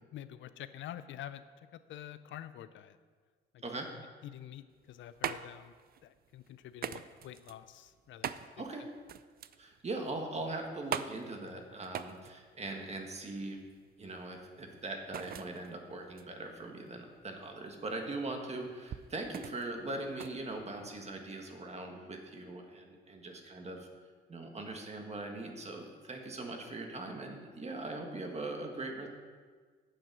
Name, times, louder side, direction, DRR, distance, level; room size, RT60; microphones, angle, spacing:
voice 1, 0.1-1.4 1.7-3.0 3.5-3.6 4.2-5.7 6.0-8.3 8.6-8.7, left 11 dB, 75° left, 13 dB, 0.5 m, -47 dB
sound 1, 4.7-21.3, right 9 dB, 50° right, 0.5 m, -44 dB
voice 2, 8.6-8.9 9.6-13.6 14.0-23.9 24.3-29.1, right 2 dB, 35° right, 3 dB, 1.8 m, -41 dB
8.7 x 7.5 x 6.2 m, 1.5 s
cardioid pair, 90°, 20 cm